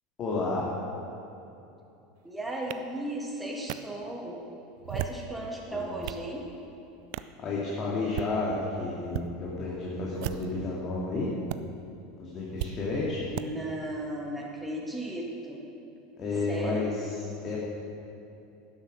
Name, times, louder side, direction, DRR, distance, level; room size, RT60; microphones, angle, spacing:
voice 1, 0.2-0.7 5.7-6.0 7.4-11.3 12.2-13.2 16.2-16.9 17.4-17.6, left 3 dB, 40° left, -5 dB, 2.3 m, -31 dB
voice 2, 2.2-4.4 4.9-6.5 13.3-15.6 16.5-16.9, right 1 dB, 5° right, -2 dB, 1.8 m, -35 dB
sound 1, 2.7-2.8 3.7-3.8 4.8-5.3 5.8-6.3 7.1-7.3 8.0-8.3 9.1-9.3 10.1-10.6 11.5-11.6 12.6-12.7 13.3-13.5, right 15 dB, 65° right, 0.4 m, -35 dB
11.5 x 7.7 x 6.2 m, 2.9 s
hypercardioid pair, 85°, 0 cm